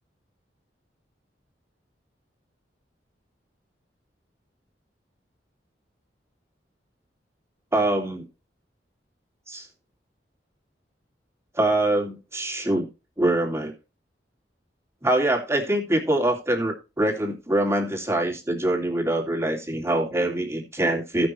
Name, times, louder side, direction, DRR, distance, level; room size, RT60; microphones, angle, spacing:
voice 1, 7.7-8.2 9.5-9.7 11.5-12.8 13.2-13.7 15.0-21.3, right 1 dB, 15° right, 1 dB, 2.7 m, -24 dB
16.5 x 6.1 x 3.2 m, 0.29 s
head